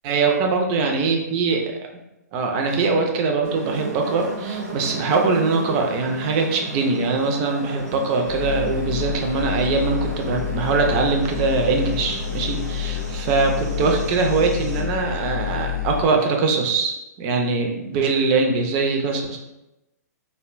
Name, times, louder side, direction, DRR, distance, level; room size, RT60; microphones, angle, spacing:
voice 1, 0.0-1.6 2.3-19.4, right 4 dB, 35° right, 2 dB, 0.4 m, -22 dB
sound 1, 3.4-14.8, right 2 dB, 70° right, 0.7 m, -35 dB
sound 2, 8.3-16.1, left 10 dB, 75° left, 0.4 m, -29 dB
2.6 x 2.1 x 2.4 m, 0.94 s
hypercardioid pair, 120°, 9 cm